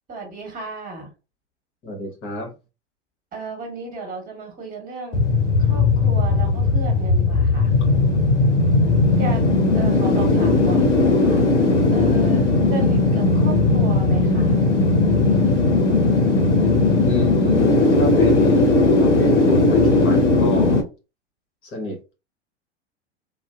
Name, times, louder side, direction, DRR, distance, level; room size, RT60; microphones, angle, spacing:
voice 1, 0.1-1.1 3.3-5.2 5.6-7.7 9.1-9.5 9.7-11.4 11.9-14.6, right 3 dB, 25° right, 1.4 m, -34 dB
voice 2, 1.8-2.5 17.0-20.8 21.6-22.1, left 1 dB, 35° left, 1.0 m, -30 dB
sound 1, 5.1-20.8, left 3 dB, 90° left, 0.7 m, -17 dB
2.6 x 2.1 x 2.2 m
figure-of-eight pair, 90°, 35 cm